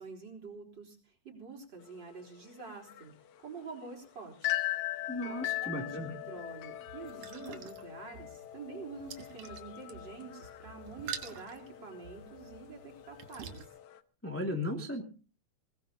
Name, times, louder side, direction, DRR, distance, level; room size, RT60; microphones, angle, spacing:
voice 1, 0.0-3.1 3.4-4.6 4.9-13.6, right 4 dB, 35° right, -1 dB, 4.4 m, -47 dB
sound 1, 1.8-14.0, left 15 dB, 80° left, 2.3 m, -41 dB
voice 2, 5.1-6.1 14.2-15.0, left 1 dB, 5° left, 1 dB, 1.7 m, -36 dB
sound 2, 6.4-13.7, right 7 dB, 90° right, 2.9 m, -48 dB
21.5 x 20.0 x 2.8 m, 0.36 s
omnidirectional pair, 3.4 m